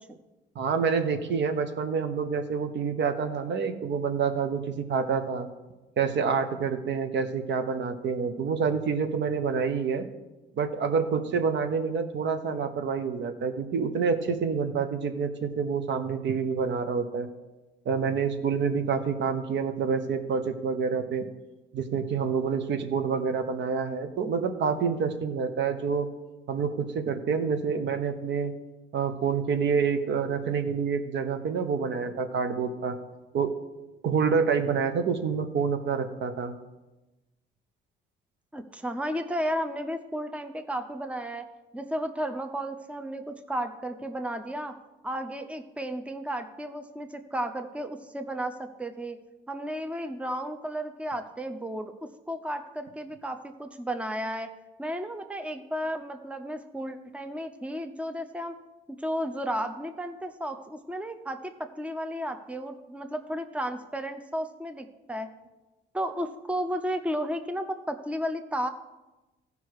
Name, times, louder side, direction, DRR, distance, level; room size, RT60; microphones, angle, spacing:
voice 1, 0.5-5.5 6.0-10.0 10.6-17.3 17.8-21.3 21.7-26.1 26.5-28.5 28.9-32.9 33.3-33.5 34.0-36.5, right 6 dB, 65° right, 8 dB, 1.1 m, -27 dB
voice 2, 38.5-41.5 41.7-44.8 45.0-49.2 49.5-54.5 54.8-58.6 58.9-65.3 65.9-68.7, equal, 5° right, 7 dB, 0.7 m, -33 dB
15.0 x 5.4 x 4.8 m, 1.1 s
cardioid pair, 90°, 20 cm